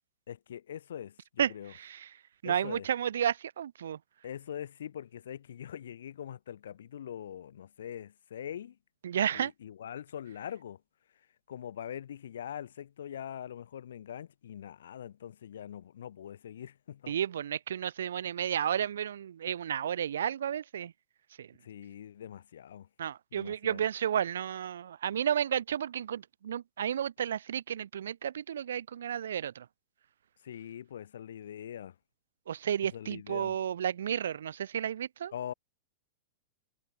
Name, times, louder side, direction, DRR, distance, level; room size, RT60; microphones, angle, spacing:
voice 1, 0.3-1.7 2.4-2.9 4.2-8.8 9.3-10.8 11.5-17.1 21.6-22.9 23.3-23.8 30.4-31.9 32.9-33.6 35.3-35.5, left 9 dB, 85° left, 1.4 m, -43 dB
voice 2, 1.4-2.1 2.4-4.0 9.0-9.5 17.1-20.9 21.4-21.5 23.0-29.7 32.5-35.3, right 9 dB, 90° right, 0.4 m, -32 dB
supercardioid pair, 155°, 0 cm